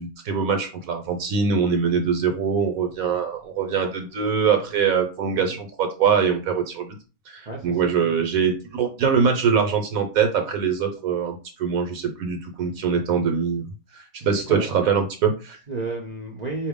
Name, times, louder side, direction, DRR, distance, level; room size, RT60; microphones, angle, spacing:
voice 1, 0.0-6.9 7.3-13.7 14.1-15.6, right 6 dB, 70° right, 1.1 m, -23 dB
voice 2, 7.5-8.2 14.2-14.7 15.7-16.7, right 2 dB, 45° right, 0.5 m, -32 dB
4.3 x 2.6 x 3.6 m
omnidirectional pair, 1.6 m